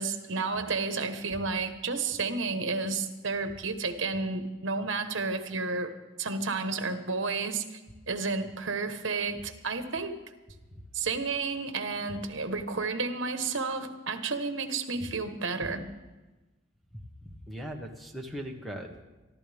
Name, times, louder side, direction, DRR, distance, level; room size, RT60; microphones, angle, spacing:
voice 1, 0.0-5.9 6.2-7.8 8.1-10.2 10.9-15.9, right 4 dB, 65° right, 8 dB, 1.3 m, -31 dB
voice 2, 17.2-19.0, equal, ahead, 2 dB, 1.4 m, -39 dB
24.0 x 12.5 x 3.5 m, 1.2 s
head